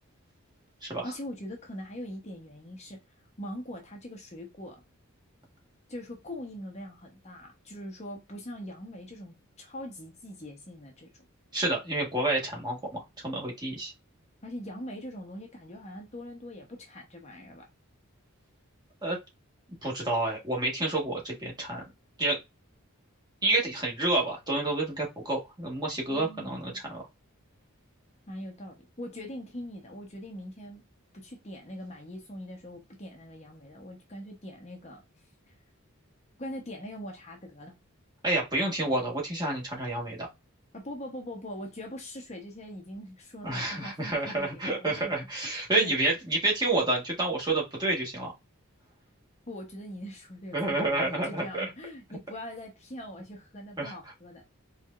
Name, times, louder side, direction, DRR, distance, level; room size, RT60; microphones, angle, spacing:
voice 1, 1.0-3.0 3.4-4.8 5.9-11.1 14.4-17.7 26.1-26.7 28.3-30.8 31.1-35.0 35.5-35.6 36.4-37.7 40.7-45.1 45.8-46.0 49.5-54.4, left 1 dB, 30° left, 1.0 m, -42 dB
voice 2, 11.5-13.9 19.0-19.2 19.8-21.8 22.2-22.4 23.4-27.0 38.2-40.3 43.4-48.3 50.5-51.6 53.8-53.9, right 2 dB, 20° right, 1.6 m, -29 dB
4.6 x 3.5 x 2.5 m
head